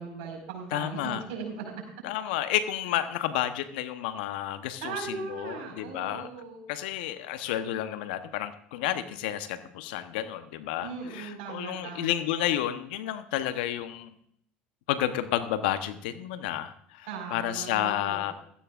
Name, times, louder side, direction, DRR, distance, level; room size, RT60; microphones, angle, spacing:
voice 1, 0.0-1.6 4.8-6.6 10.8-12.1 17.1-18.3, right 5 dB, 75° right, 0 dB, 4.9 m, -38 dB
voice 2, 0.7-1.2 2.0-6.3 6.7-14.1 14.9-18.3, left 12 dB, 80° left, 11 dB, 1.0 m, -31 dB
16.5 x 14.0 x 2.5 m, 0.69 s
hypercardioid pair, 75°, 5 cm